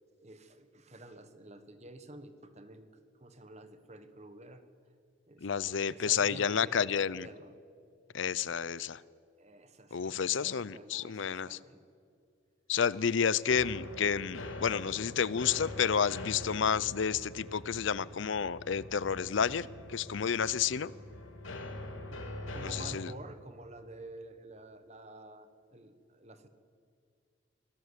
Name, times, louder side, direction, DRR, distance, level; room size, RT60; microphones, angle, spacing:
voice 1, 0.2-4.6 5.3-7.5 9.4-11.8 22.1-26.5, right 2 dB, 35° right, 10 dB, 1.4 m, -50 dB
voice 2, 5.4-7.3 8.1-9.0 9.9-11.6 12.7-20.9 22.6-23.1, left 7 dB, 70° left, 20 dB, 0.5 m, -30 dB
sound 1, 13.5-23.0, left 2 dB, 85° left, 2.6 m, -44 dB
25.0 x 17.5 x 8.2 m, 2.3 s
head